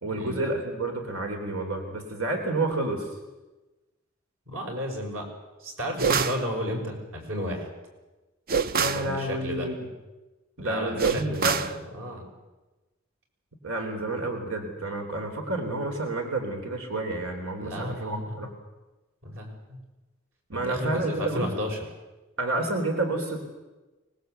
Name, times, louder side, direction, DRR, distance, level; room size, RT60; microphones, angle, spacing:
voice 1, 0.0-3.1 8.7-9.9 10.6-11.7 13.6-18.5 20.5-21.5 22.4-23.4, right 2 dB, 85° right, 3 dB, 3.6 m, -30 dB
voice 2, 4.5-5.2 5.6-7.7 8.8-9.7 10.6-12.2 17.6-18.5 19.2-19.6 20.5-21.8, equal, 65° right, 1 dB, 6.6 m, -33 dB
sound 1, 6.0-6.4 8.5-9.1 11.0-11.8, right 6 dB, 45° right, 0.7 m, -25 dB
24.5 x 20.0 x 8.1 m, 1.1 s
head